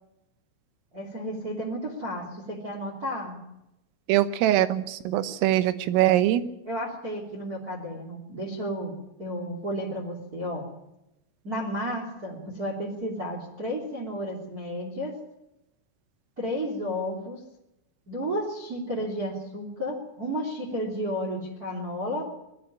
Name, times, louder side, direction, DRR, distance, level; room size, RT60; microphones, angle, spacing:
voice 1, 0.9-3.4 6.7-8.9 9.2-10.7 11.4-15.2 16.4-17.4 18.1-22.3, equal, 25° right, 0 dB, 2.4 m, -32 dB
voice 2, 4.1-6.4, right 13 dB, 85° right, 13 dB, 3.7 m, -22 dB
20.0 x 13.5 x 9.9 m, 0.89 s
omnidirectional pair, 5.8 m